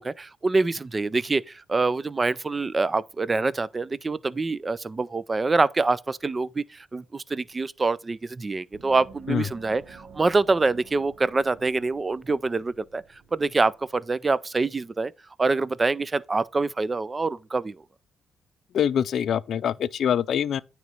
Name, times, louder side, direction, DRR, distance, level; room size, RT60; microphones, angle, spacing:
voice 1, 0.0-13.0 13.3-15.1 15.4-17.8, right 3 dB, 25° right, 0.4 m, -25 dB
Gong, 8.7-14.0, right 6 dB, 65° right, 0.9 m, -51 dB
voice 2, 18.7-20.6, left 9 dB, 65° left, 0.4 m, -24 dB
9.3 x 3.1 x 5.3 m
cardioid pair, 90°, 0 cm